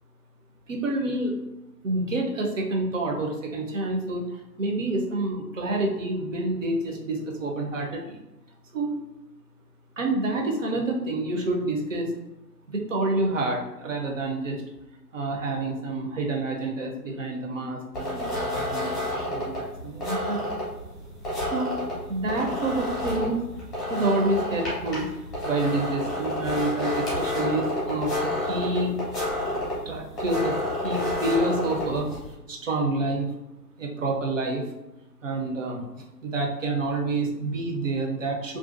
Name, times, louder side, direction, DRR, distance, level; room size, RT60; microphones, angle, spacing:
voice 1, 0.7-1.4 1.8-8.2 8.7-9.0 10.0-12.1 12.7-14.6 15.1-20.4 21.5-21.7 22.1-23.4 23.9-25.1 25.4-28.9 29.9-32.1 32.5-33.3 33.8-34.7 35.2-38.6, right 2 dB, 50° right, 1 dB, 0.5 m, -28 dB
sound 1, 17.9-32.3, left 1 dB, 10° left, 0.7 m, -30 dB
2.5 x 2.3 x 2.3 m, 0.95 s
figure-of-eight pair, 145°, 50 cm